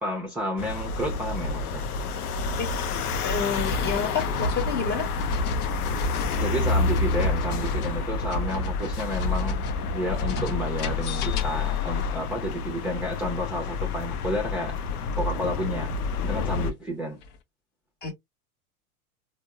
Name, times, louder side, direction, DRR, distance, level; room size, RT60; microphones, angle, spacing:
voice 1, 0.0-1.9 6.3-9.6 9.9-15.9 16.2-17.2, equal, 5° right, 0.7 m, -31 dB
sound 1, 0.6-16.7, left 4 dB, 80° left, 0.7 m, -29 dB
voice 2, 3.2-5.1 18.0-18.1, left 5 dB, 20° left, 1.2 m, -29 dB
sound 2, 3.5-11.9 15.5-15.6 17.2-17.4, left 2 dB, 50° left, 0.8 m, -32 dB
3.6 x 2.2 x 2.4 m
hypercardioid pair, 100°, 45 cm